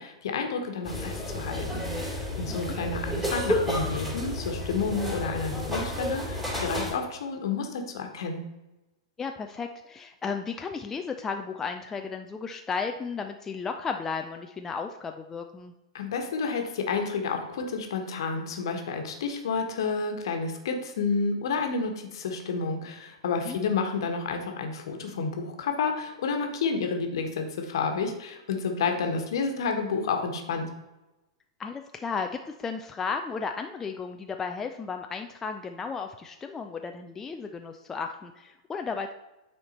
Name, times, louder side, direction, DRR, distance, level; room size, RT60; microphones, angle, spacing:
voice 1, 0.0-8.4 15.9-30.7, left 4 dB, 55° left, 4 dB, 1.3 m, -30 dB
sound 1, 0.8-6.9, left 1 dB, 10° right, 2.9 m, -31 dB
voice 2, 9.2-15.7 23.4-23.6 31.6-39.1, left 5 dB, 15° left, 5 dB, 0.4 m, -34 dB
9.2 x 4.4 x 4.2 m, 1.0 s
figure-of-eight pair, 100°, 3 cm